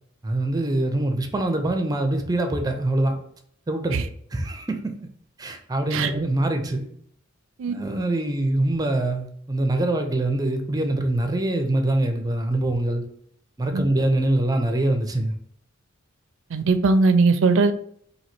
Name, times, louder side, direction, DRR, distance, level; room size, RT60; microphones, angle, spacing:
voice 1, 0.2-3.2 3.7-4.0 4.3-4.9 5.4-6.9 7.7-13.0 13.6-15.3, right 1 dB, 20° right, 5 dB, 0.5 m, -24 dB
voice 2, 16.5-17.7, right 3 dB, 65° right, 10 dB, 0.4 m, -19 dB
3.0 x 2.8 x 4.3 m, 0.66 s
head